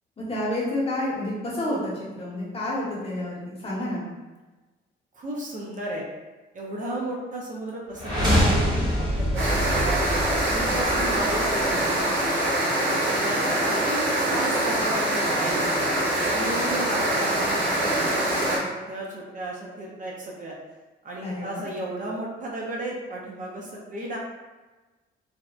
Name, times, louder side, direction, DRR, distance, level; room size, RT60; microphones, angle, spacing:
voice 1, 0.2-4.0 21.2-21.6, left 1 dB, 30° left, -6 dB, 0.9 m, -29 dB
voice 2, 5.2-6.0 6.5-8.6 9.0-10.1 10.5-12.5 13.1-15.8 16.3-20.5 21.0-24.2, right 1 dB, 40° right, -3 dB, 0.5 m, -34 dB
sound 1, 7.9-11.9, equal, 20° right, 1.1 m, -25 dB
sound 2, 9.4-18.6, right 1 dB, 85° right, 0.9 m, -24 dB
2.7 x 2.1 x 2.3 m, 1.2 s
cardioid pair, 90°, 20 cm